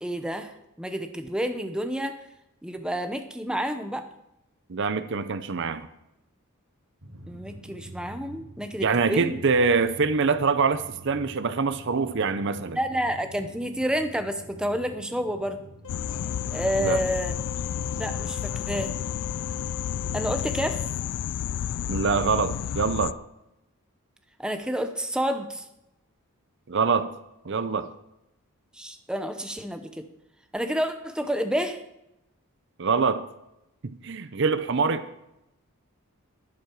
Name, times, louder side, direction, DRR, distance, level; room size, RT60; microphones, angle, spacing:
voice 1, 0.0-2.2 2.6-4.1 7.3-9.3 12.7-15.6 16.5-17.3 17.9-18.9 20.1-20.8 24.4-25.6 28.7-30.0 30.5-31.8, equal, 5° right, 7 dB, 0.8 m, -29 dB
voice 2, 4.7-5.9 8.8-12.8 16.8-17.0 21.9-23.2 26.7-27.2 27.4-27.9 32.8-33.3 33.8-35.1, right 4 dB, 55° right, 12 dB, 0.6 m, -24 dB
Drum, 7.0-20.4, right 2 dB, 70° right, 2.1 m, -47 dB
sound 1, 15.8-20.9, left 8 dB, 60° left, 1.1 m, -42 dB
sound 2, 15.9-23.1, left 9 dB, 90° left, 0.3 m, -31 dB
11.5 x 11.0 x 4.6 m, 0.87 s
head